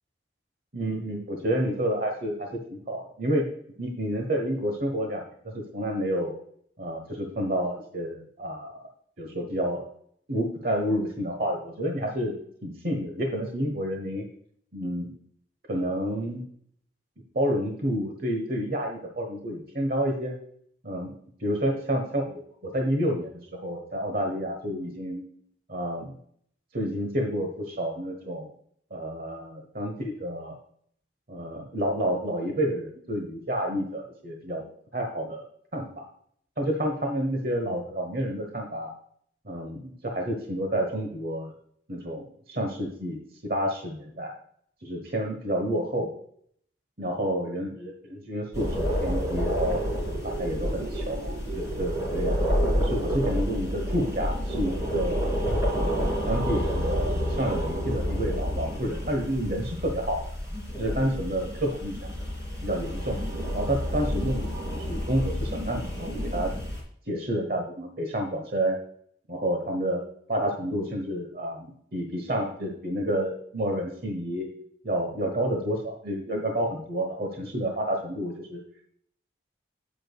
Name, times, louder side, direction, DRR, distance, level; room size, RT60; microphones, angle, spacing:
voice 1, 0.7-3.5 3.8-6.3 6.8-8.8 9.2-9.9 10.3-14.3 14.7-15.1 15.7-16.4 17.3-20.3 20.8-21.1 21.4-25.2 25.7-26.2 26.7-28.5 28.9-30.5 31.3-34.6 34.9-35.4 35.7-36.0 36.6-38.9 39.4-41.5 41.9-44.3 44.8-46.1 47.0-49.8 50.2-52.5 52.8-55.2 55.7-60.3 60.8-62.1 62.6-63.2 63.5-66.5 67.1-68.8 69.3-70.0 70.3-74.5 74.8-78.6, equal, 55° right, 3 dB, 1.2 m, -29 dB
sound 1, 48.5-66.8, equal, 15° right, 2.9 m, -29 dB
8.7 x 8.1 x 2.3 m, 0.64 s
head